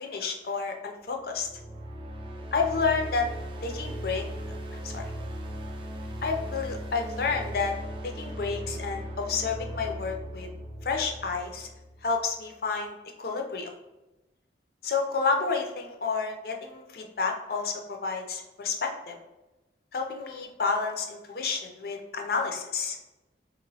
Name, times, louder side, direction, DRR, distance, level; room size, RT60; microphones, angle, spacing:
voice 1, 0.0-1.5 2.5-3.3 3.6-4.2 4.8-5.1 6.2-7.7 8.0-10.5 10.8-11.7 12.0-13.7 14.8-19.2 19.9-23.0, left 4 dB, 55° left, 3 dB, 0.4 m, -30 dB
sound 1, 1.2-12.3, equal, 25° right, 0.4 m, -38 dB
2.9 x 2.9 x 2.7 m, 1.0 s
head